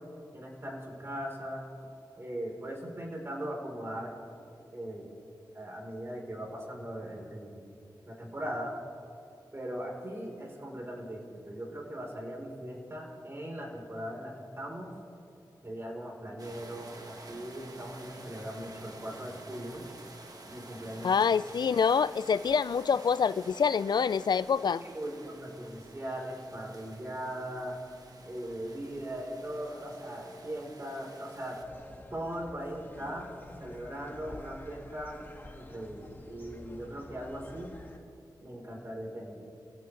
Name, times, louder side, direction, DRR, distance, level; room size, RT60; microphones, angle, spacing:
voice 1, 0.3-1.6 2.2-4.1 4.7-5.1 5.5-7.7 8.0-8.7 9.5-14.9 15.6-19.8 20.5-21.1 24.7-27.8 28.2-31.6 32.1-33.3 33.6-35.2 35.5-37.7 38.4-39.4, equal, 35° right, -1 dB, 4.0 m, -39 dB
sound 1, 16.4-31.6, right 2 dB, 55° right, 1.6 m, -50 dB
voice 2, 21.0-24.8, left 6 dB, 70° left, 17 dB, 0.3 m, -26 dB
sound 2, 31.6-38.0, left 2 dB, 25° left, 1.9 m, -49 dB
27.5 x 15.5 x 3.3 m, 2.8 s
wide cardioid pair, 70°, 8 cm